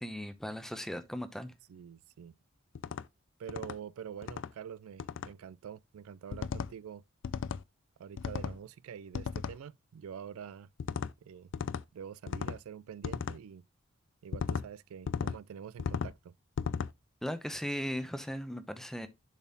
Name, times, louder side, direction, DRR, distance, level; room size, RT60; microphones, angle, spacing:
voice 1, 0.0-1.5 17.2-19.1, equal, ahead, 0.7 m, -37 dB
voice 2, 1.7-2.3 3.4-7.0 8.0-10.7 11.2-11.5 11.9-13.6 14.2-16.3, right 8 dB, 90° right, 0.3 m, -46 dB
sound 1, 2.8-3.0 3.5-3.8 4.2-4.5 5.0-5.3 6.3-6.7 7.2-7.6 8.2-8.6 9.1-9.6 10.8-11.1 11.5-11.8 12.3-12.6 13.0-13.4 14.3-14.7 15.1-15.4 15.8-16.1 16.6-16.9, left 6 dB, 60° left, 0.4 m, -35 dB
7.1 x 4.0 x 3.9 m
head